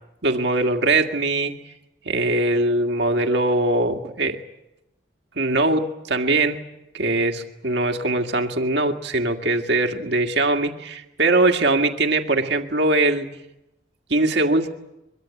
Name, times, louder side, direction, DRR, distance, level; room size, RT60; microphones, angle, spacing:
voice 1, 0.2-1.6 2.1-4.4 5.4-6.6 6.9-13.3 14.1-14.7, right 2 dB, 65° right, 5 dB, 2.0 m, -21 dB
23.5 x 23.0 x 8.5 m, 0.90 s
head